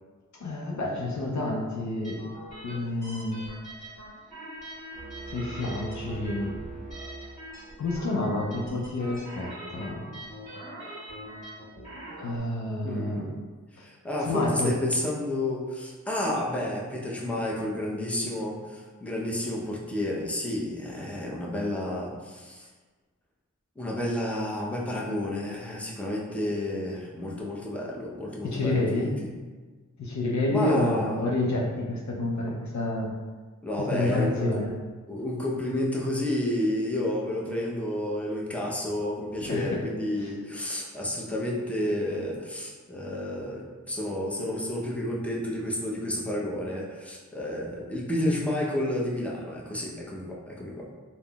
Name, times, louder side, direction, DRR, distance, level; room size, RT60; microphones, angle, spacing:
voice 1, 0.3-2.2 2.6-3.4 5.3-6.6 7.8-10.1 12.2-13.3 13.8-13.9 14.3-14.8 28.4-29.2 30.0-33.1 33.8-34.7 39.4-39.8, left 2 dB, 60° left, -2 dB, 0.5 m, -29 dB
sound 1, 2.0-12.4, right 1 dB, 25° left, 1.5 m, -43 dB
sound 2, 4.9-7.9, right 3 dB, 25° right, 1.0 m, -41 dB
voice 2, 12.8-13.4 13.7-22.7 23.8-29.3 30.5-31.2 33.6-34.6 35.1-50.9, left 1 dB, 5° left, -4 dB, 0.6 m, -31 dB
3.6 x 2.0 x 2.3 m, 1.4 s
cardioid pair, 40°, 32 cm